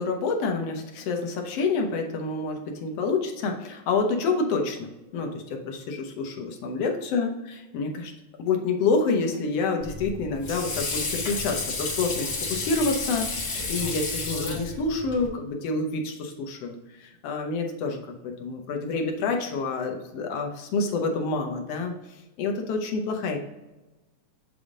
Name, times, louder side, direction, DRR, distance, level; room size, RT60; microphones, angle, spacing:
voice 1, 0.0-7.3 7.7-8.1 8.4-21.9 22.4-23.4, left 3 dB, 70° left, 2 dB, 1.6 m, -28 dB
Water / Sink (filling or washing), 9.8-15.3, left 3 dB, 45° left, 1.5 m, -31 dB
8.1 x 3.5 x 3.7 m, 1.0 s
omnidirectional pair, 3.5 m